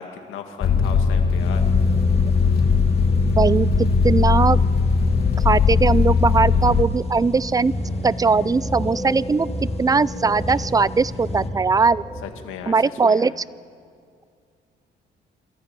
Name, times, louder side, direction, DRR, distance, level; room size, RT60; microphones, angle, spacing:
voice 1, 0.0-1.6 12.2-13.4, left 7 dB, 85° left, 5 dB, 1.9 m, -36 dB
sound 1, 0.6-6.8, left 5 dB, 50° left, 1.5 m, -19 dB
sound 2, 1.4-11.5, left 2 dB, 30° left, 1.7 m, -33 dB
sound 3, 1.8-12.2, equal, 5° left, 4.3 m, -34 dB
voice 2, 3.4-4.6 5.4-7.7 8.0-9.5 9.8-12.0 12.7-13.3, right 4 dB, 20° right, 20 dB, 0.4 m, -19 dB
24.0 x 14.0 x 9.0 m, 2.3 s
cardioid pair, 90°, 20 cm